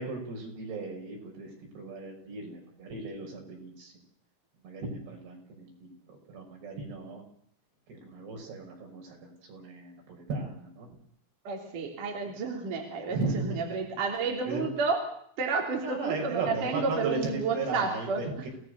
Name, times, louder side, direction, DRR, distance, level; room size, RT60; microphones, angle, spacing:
voice 1, 0.0-3.9 4.6-7.2 7.9-10.9 13.1-13.6 14.5-14.7 15.8-18.5, right 3 dB, 65° right, 1 dB, 8.2 m, -36 dB
voice 2, 11.4-15.0 15.4-18.2, right 4 dB, 50° right, 1 dB, 4.6 m, -31 dB
28.5 x 18.5 x 6.8 m, 0.67 s
omnidirectional pair, 5.0 m